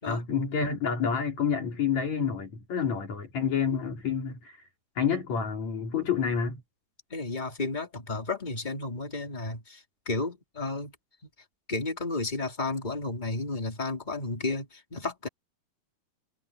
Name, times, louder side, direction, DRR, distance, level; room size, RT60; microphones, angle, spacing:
voice 1, 0.1-4.6 5.0-6.6, left 6 dB, 65° left, 4.7 m, -28 dB
voice 2, 7.1-10.9 11.7-15.3, left 3 dB, 15° left, 3.3 m, -32 dB
omnidirectional pair, 3.4 m